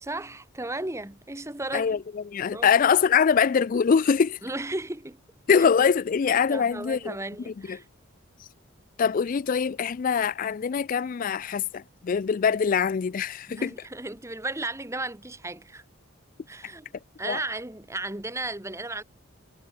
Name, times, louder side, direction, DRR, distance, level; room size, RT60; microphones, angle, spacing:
voice 1, 0.0-2.0 2.5-2.7 4.4-5.2 6.5-7.9 13.5-15.8 16.5-16.9 17.2-19.0, right 2 dB, 15° right, 1.1 m, -34 dB
voice 2, 1.7-4.4 5.5-7.2 7.5-7.8 9.0-13.7 17.2-17.4, left 6 dB, 40° left, 0.3 m, -23 dB
head